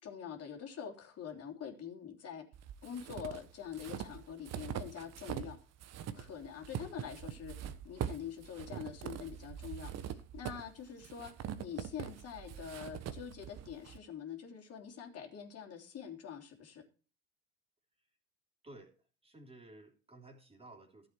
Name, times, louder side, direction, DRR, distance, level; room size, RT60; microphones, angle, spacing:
voice 1, 0.0-2.4 2.8-5.6 6.1-16.8, left 8 dB, 40° left, 2 dB, 3.2 m, -45 dB
sound 1, 2.5-5.5 5.8-14.0, right 10 dB, 40° right, 1.3 m, -43 dB
voice 2, 18.6-18.9 19.2-21.1, right 2 dB, 15° right, 1 dB, 3.4 m, -54 dB
14.0 x 7.9 x 4.5 m, 0.37 s
hypercardioid pair, 80°, 39 cm